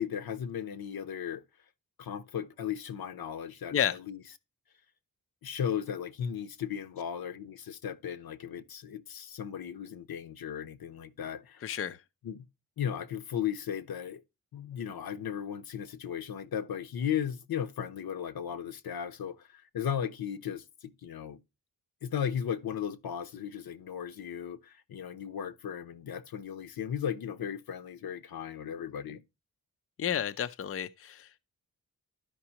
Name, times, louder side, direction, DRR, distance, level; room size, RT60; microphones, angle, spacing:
voice 1, 0.0-1.4 2.0-4.2 5.4-11.8 12.2-12.4 12.8-14.2 14.5-21.4 22.0-29.2, left 8 dB, 80° left, 0.9 m, -36 dB
voice 2, 11.6-12.0 30.0-31.4, left 9 dB, 40° left, 0.5 m, -31 dB
12.5 x 5.3 x 2.9 m
wide cardioid pair, 135°, 36 cm